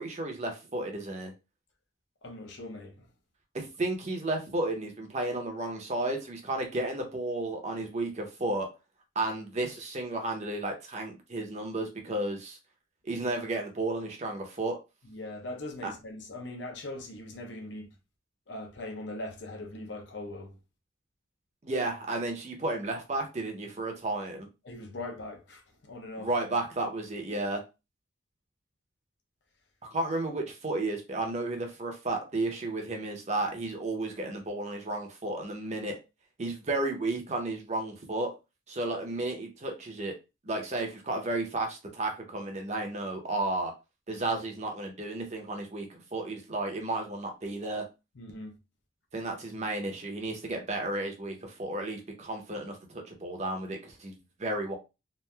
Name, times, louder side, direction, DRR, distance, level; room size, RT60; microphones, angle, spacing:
voice 1, 0.0-1.3 3.5-8.7 9.2-12.6 13.0-14.8 15.8-15.9 21.6-24.5 26.2-27.6 29.8-35.9 36.4-38.3 38.7-40.1 40.4-43.7 44.1-47.9 49.1-54.1 54.4-54.8, right 2 dB, 35° right, 0.6 m, -33 dB
voice 2, 2.2-3.1 15.0-17.9 18.5-20.6 24.6-26.3 48.1-48.5, left 2 dB, 65° left, 0.7 m, -41 dB
3.1 x 2.4 x 2.2 m
head